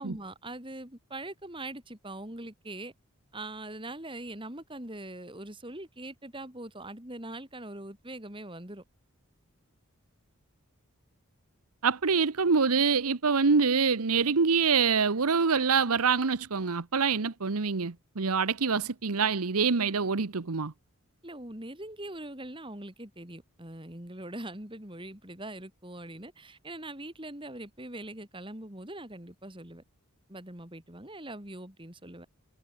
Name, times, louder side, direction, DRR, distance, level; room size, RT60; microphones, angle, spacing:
voice 1, 0.0-2.9 3.3-8.8 21.2-29.8 30.3-32.3, right 1 dB, 20° right, 3.4 m, -42 dB
voice 2, 11.8-20.7, right 5 dB, 85° right, 1.0 m, -25 dB
head